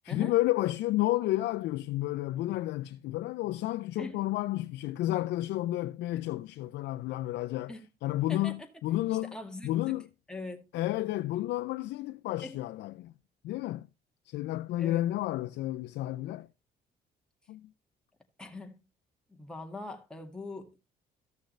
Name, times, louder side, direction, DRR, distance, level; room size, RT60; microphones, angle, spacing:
voice 1, 0.0-7.7 8.0-9.4 9.6-10.1 10.7-13.1 13.4-13.9 14.3-16.5 17.5-17.7, left 16 dB, 85° left, 0.5 m, -31 dB
voice 2, 8.3-8.7 9.1-10.0 10.3-10.7 12.4-12.6 14.7-15.0 18.4-18.8 19.3-20.8, left 2 dB, 5° left, 2.1 m, -42 dB
14.5 x 6.4 x 3.3 m
cardioid pair, 110°, 17 cm